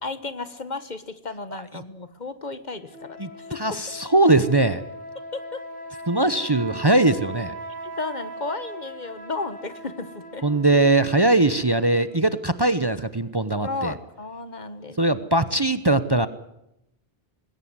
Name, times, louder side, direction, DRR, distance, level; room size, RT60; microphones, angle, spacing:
voice 1, 0.0-3.8 5.3-5.6 7.8-10.5 13.6-15.3 15.6-15.7, left 3 dB, 45° left, 13 dB, 1.4 m, -34 dB
sound 1, 2.8-12.6, right 1 dB, 10° left, 5.7 m, -39 dB
voice 2, 3.6-4.8 6.1-7.5 10.4-13.9 15.0-16.3, right 2 dB, 25° right, 13 dB, 0.9 m, -20 dB
20.0 x 17.5 x 9.6 m, 0.82 s
omnidirectional pair, 1.0 m